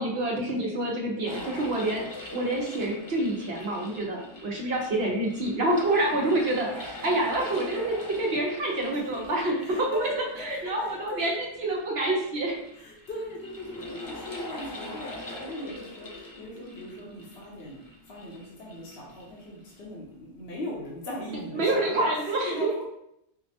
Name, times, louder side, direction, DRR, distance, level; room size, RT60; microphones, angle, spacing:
voice 1, 0.0-10.1 10.4-11.3 11.6-12.5 21.5-22.7, right 1 dB, 70° right, -1 dB, 1.1 m, -27 dB
sound 1, 1.2-19.9, left 1 dB, 25° left, 0.5 m, -43 dB
voice 2, 9.6-11.3 12.7-17.8 18.1-22.9, equal, 70° left, -3 dB, 1.0 m, -39 dB
4.9 x 2.2 x 2.7 m, 0.77 s
omnidirectional pair, 1.1 m